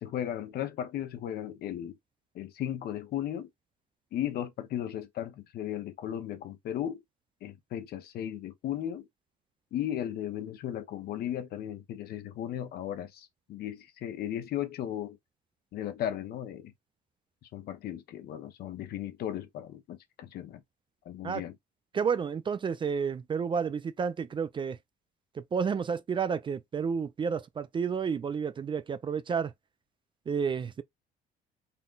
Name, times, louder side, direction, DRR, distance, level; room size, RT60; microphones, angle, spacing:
voice 1, 0.0-2.0 2.3-3.5 4.1-7.0 7.4-9.1 9.7-15.2 15.7-16.7 17.4-20.6 21.0-21.6, left 11 dB, 65° left, 0.9 m, -36 dB
voice 2, 21.9-24.8 25.4-29.5 30.3-30.8, right 6 dB, 30° right, 0.4 m, -31 dB
3.9 x 2.2 x 3.8 m
cardioid pair, 110°, 17 cm